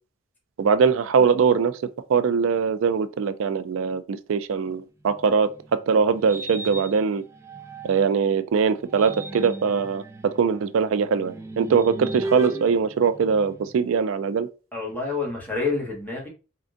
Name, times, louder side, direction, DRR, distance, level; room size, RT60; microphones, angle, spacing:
voice 1, 0.6-1.7 2.1-7.2 7.8-14.5, right 6 dB, 90° right, 0.4 m, -22 dB
sound 1, 5.1-8.2 8.7-13.9, right 2 dB, 15° right, 0.4 m, -37 dB
voice 2, 14.7-16.3, left 4 dB, 10° left, 1.5 m, -28 dB
4.3 x 3.7 x 2.5 m
head